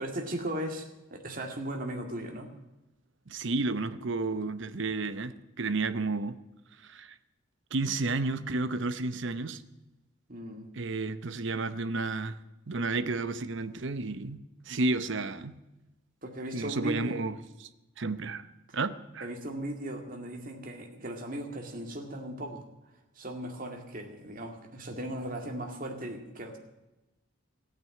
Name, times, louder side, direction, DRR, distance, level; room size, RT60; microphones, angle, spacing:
voice 1, 0.0-2.5 10.3-10.7 16.2-17.2 19.2-22.6 23.2-26.6, right 1 dB, 40° right, 3 dB, 2.2 m, -37 dB
voice 2, 3.3-6.4 6.8-7.1 7.7-9.6 10.7-12.4 12.7-15.5 16.5-17.3 17.6-17.7 18.0-18.5 18.7-19.3, right 3 dB, 60° right, 13 dB, 0.8 m, -31 dB
14.0 x 9.5 x 9.6 m, 0.99 s
head